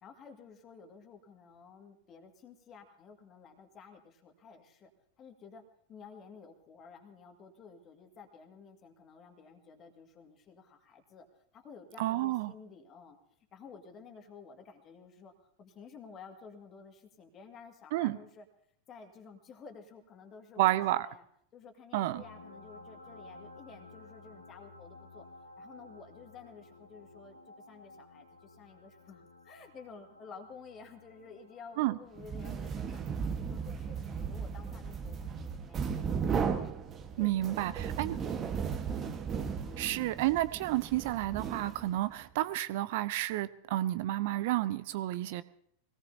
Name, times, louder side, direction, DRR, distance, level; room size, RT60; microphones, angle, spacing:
voice 1, 0.0-4.9 5.2-5.6 5.9-11.3 11.5-13.2 13.5-18.5 18.9-21.2 21.5-25.3 25.6-33.0 33.3-36.4 37.2-39.9, left 5 dB, 30° left, 4 dB, 2.1 m, -53 dB
voice 2, 12.0-12.5 17.9-18.2 20.6-21.1 21.9-22.2 31.8-32.0 37.2-38.2 39.8-45.4, right 15 dB, 50° right, 16 dB, 0.6 m, -30 dB
sound 1, 22.0-39.3 40.8-40.9, left 2 dB, 80° left, 1.6 m, -56 dB
sound 2, 32.2-42.1, right 6 dB, 25° right, 1.4 m, -36 dB
24.0 x 18.5 x 2.8 m, 0.65 s
figure-of-eight pair, 90°, 0 cm